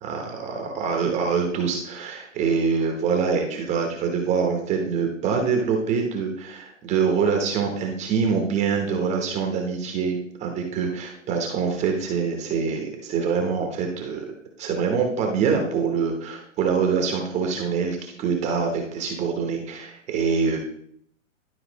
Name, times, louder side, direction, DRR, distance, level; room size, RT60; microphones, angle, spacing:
voice 1, 0.0-14.2 14.6-20.6, right 5 dB, 15° right, 3 dB, 0.9 m, -25 dB
11.0 x 4.4 x 4.0 m, 0.69 s
hypercardioid pair, 140°, 39 cm